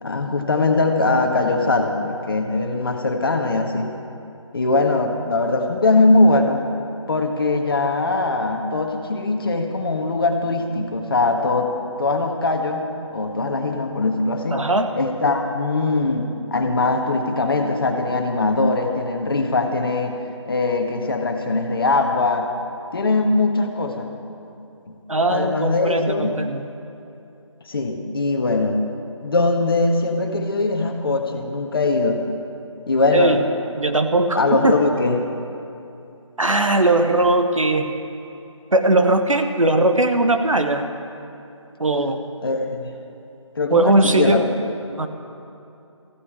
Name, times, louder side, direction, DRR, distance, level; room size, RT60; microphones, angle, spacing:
voice 1, 0.0-3.9 4.5-6.6 7.1-11.7 12.0-14.7 14.9-20.2 20.5-22.5 22.9-24.1 25.3-26.4 27.7-28.8 29.2-32.2 32.9-33.4 34.3-35.2 42.4-42.9 43.5-44.4, left 3 dB, 45° left, 4 dB, 1.5 m, -21 dB
voice 2, 14.5-14.9 25.1-26.6 33.1-33.5 33.7-34.8 36.4-37.9 38.7-40.9 41.8-42.2 43.7-44.5 45.0-45.1, right 2 dB, 85° right, 6 dB, 1.3 m, -19 dB
14.5 x 8.3 x 9.0 m, 2.7 s
figure-of-eight pair, 160°, 16 cm